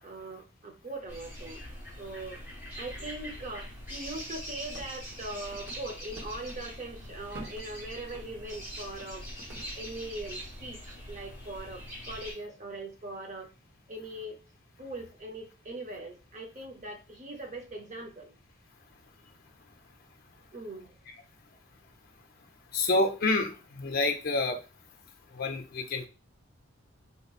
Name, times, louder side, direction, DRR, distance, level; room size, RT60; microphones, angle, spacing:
voice 1, 0.0-1.6 2.0-2.4 2.8-9.3 9.7-13.5 13.9-14.4 14.8-18.3 20.5-20.9, right 2 dB, 40° right, 0.7 m, -41 dB
sound 1, 1.1-12.3, equal, 10° right, 1.6 m, -43 dB
sound 2, 4.7-6.7 7.0-7.7 8.1-8.2 8.6-8.7 9.0-9.1 9.4-9.7, right 1 dB, 65° right, 1.3 m, -48 dB
voice 2, 22.7-24.6 25.3-26.1, left 2 dB, 50° left, 0.4 m, -28 dB
3.5 x 2.9 x 2.4 m
head